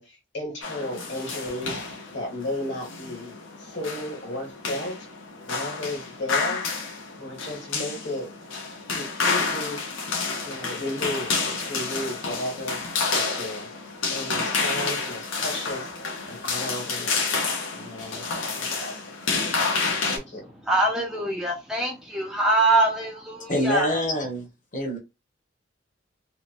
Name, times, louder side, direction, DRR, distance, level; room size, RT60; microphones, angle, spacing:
voice 1, 0.0-1.8 2.1-5.0 5.5-6.6 7.2-8.3 8.9-9.8 10.4-12.8 13.1-13.7 14.1-15.9 16.3-17.4 17.7-18.3 18.6-19.0 20.0-20.5, left 1 dB, 60° left, 1.4 m, -34 dB
sound 1, 0.6-20.2, left 4 dB, 85° left, 0.8 m, -29 dB
voice 2, 20.6-23.9, right 2 dB, ahead, 0.4 m, -23 dB
voice 3, 23.5-24.5 24.7-25.0, equal, 40° left, 0.9 m, -25 dB
2.8 x 2.1 x 2.4 m
head